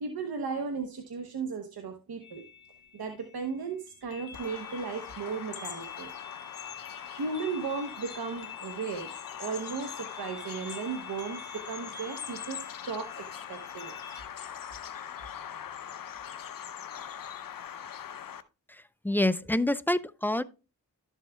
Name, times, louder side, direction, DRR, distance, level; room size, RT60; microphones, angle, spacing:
voice 1, 0.0-2.4 2.9-6.1 7.1-14.0, right 5 dB, 85° right, 1.0 m, -36 dB
sound 1, 2.2-14.2, left 6 dB, 90° left, 1.0 m, -48 dB
Bird vocalization bird call bird song, 4.3-18.4, left 9 dB, 65° left, 0.7 m, -42 dB
voice 2, 18.7-20.4, left 1 dB, 5° left, 0.5 m, -27 dB
12.0 x 7.3 x 2.2 m
cardioid pair, 55°, 36 cm